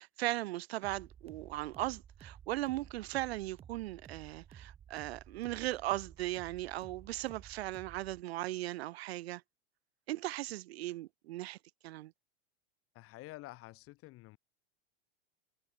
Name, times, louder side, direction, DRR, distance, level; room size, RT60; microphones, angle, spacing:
voice 1, 0.0-9.4 10.1-11.6 11.8-12.1, right 16 dB, 80° right, 1.4 m, -38 dB
sound 1, 0.8-8.2, right 8 dB, 20° right, 0.7 m, -54 dB
voice 2, 12.9-14.4, left 18 dB, 45° left, 5.8 m, -49 dB
supercardioid pair, 125°, 31 cm